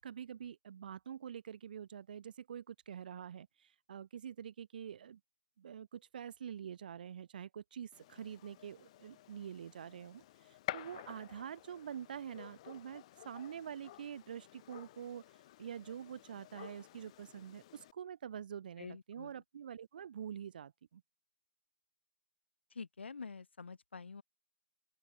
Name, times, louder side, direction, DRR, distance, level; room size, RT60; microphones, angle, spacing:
voice 1, 0.0-5.2 5.6-21.0, right 8 dB, 45° right, 1.6 m, -46 dB
Gunshot gunfire, 7.9-17.9, left 15 dB, 30° left, 0.8 m, -51 dB
voice 2, 18.8-19.3 22.7-24.2, left 5 dB, 65° left, 2.0 m, -47 dB
open air
figure-of-eight pair, 140°, 7 cm